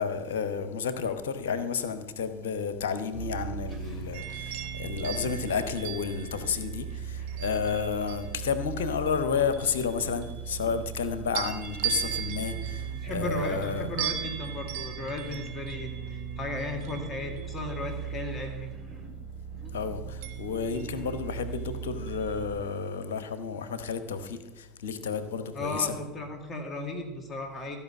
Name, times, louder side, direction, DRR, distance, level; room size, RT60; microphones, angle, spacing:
voice 1, 0.0-13.9 19.7-26.0, left 6 dB, 60° left, 0.9 m, -31 dB
sound 1, 3.1-22.6, right 7 dB, 10° right, 2.4 m, -39 dB
sound 2, 4.1-8.5 9.1-11.0 11.3-18.3 20.2-21.6 22.1-22.3, right 10 dB, 55° right, 1.3 m, -39 dB
voice 2, 12.9-18.7 25.5-27.8, left 1 dB, 20° left, 2.0 m, -35 dB
14.5 x 5.5 x 7.5 m
figure-of-eight pair, 75°, 0 cm